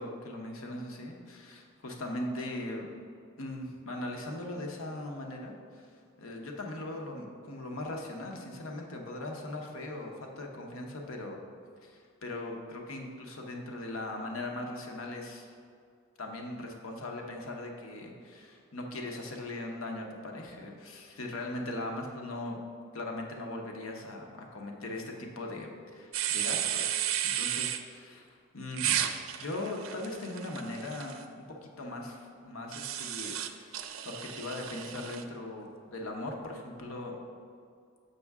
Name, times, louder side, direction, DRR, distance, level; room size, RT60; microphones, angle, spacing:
voice 1, 0.0-2.9 3.4-11.4 11.8-15.5 16.2-22.6 22.9-27.1 27.4-29.0 29.4-37.2, left 1 dB, 70° left, 1 dB, 0.9 m, -39 dB
sound 1, 26.1-27.8 28.7-31.2 32.7-35.2, right 10 dB, 70° right, 0.4 m, -33 dB
6.8 x 6.3 x 3.6 m, 2.3 s
head